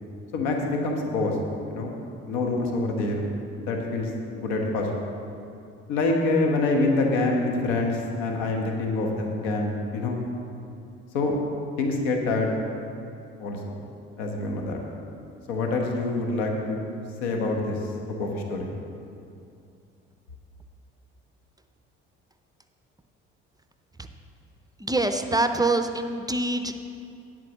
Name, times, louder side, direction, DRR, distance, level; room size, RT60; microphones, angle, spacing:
voice 1, 0.3-1.4 1.7-1.9 2.2-3.3 3.6-4.9 5.9-10.2 11.1-11.4 11.8-12.5 13.4-13.8 14.2-14.8 15.5-16.9 17.2-17.9 18.2-18.7, left 2 dB, 80° left, 1 dB, 1.3 m, -26 dB
voice 2, 24.8-26.8, right 2 dB, 15° right, 7 dB, 0.6 m, -25 dB
10.5 x 4.6 x 7.1 m, 2.6 s
hypercardioid pair, 60°, 30 cm